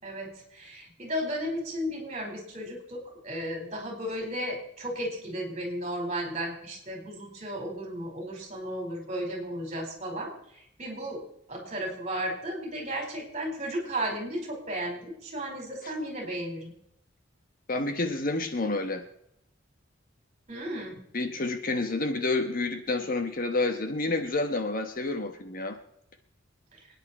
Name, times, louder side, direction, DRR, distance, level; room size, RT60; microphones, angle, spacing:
voice 1, 0.0-11.2 11.5-16.7 20.5-21.0 26.7-26.8, equal, 35° right, 1 dB, 4.6 m, -34 dB
voice 2, 17.7-19.0 21.1-25.8, left 2 dB, 45° left, 7 dB, 1.2 m, -29 dB
27.0 x 9.8 x 4.3 m, 0.75 s
head